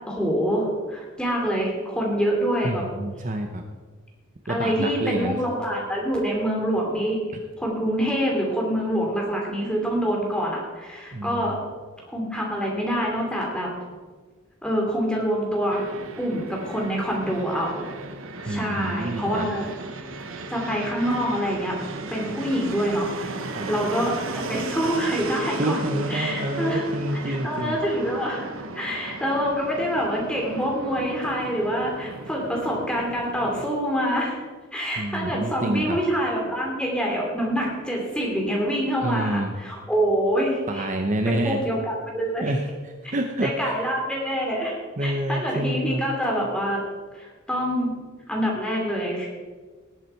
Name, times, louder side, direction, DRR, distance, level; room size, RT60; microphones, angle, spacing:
voice 1, 0.1-2.8 4.5-7.2 7.6-11.6 12.1-13.7 14.6-15.8 16.2-17.9 18.4-19.6 20.5-21.8 22.1-25.8 26.1-26.8 27.2-34.4 34.7-40.9 41.2-42.5 43.4-46.8 47.1-47.9 48.3-49.3, equal, 5° left, -2 dB, 3.0 m, -26 dB
voice 2, 2.6-3.6 4.5-5.4 7.3-7.4 11.1-11.6 18.5-19.5 23.6-23.7 25.6-27.8 35.0-36.0 39.0-39.5 40.7-41.6 42.4-43.7 45.0-46.0, right 1 dB, 35° right, 4 dB, 0.8 m, -28 dB
Fixed-wing aircraft airplane, 15.7-33.7, right 3 dB, 75° right, 1.1 m, -36 dB
18.5 x 8.3 x 4.5 m, 1.4 s
head